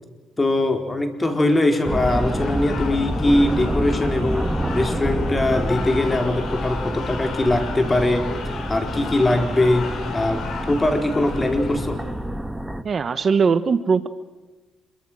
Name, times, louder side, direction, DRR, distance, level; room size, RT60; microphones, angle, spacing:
voice 1, 0.4-8.3 8.7-12.0, left 2 dB, 20° left, 5 dB, 4.5 m, -21 dB
sound 1, 1.3-12.2, left 5 dB, 65° left, 6.0 m, -34 dB
sound 2, 1.9-12.8, right 1 dB, 5° right, 1.6 m, -28 dB
voice 2, 12.8-14.1, right 5 dB, 45° right, 12 dB, 1.2 m, -20 dB
27.0 x 23.5 x 6.4 m, 1.2 s
cardioid pair, 90°, 0 cm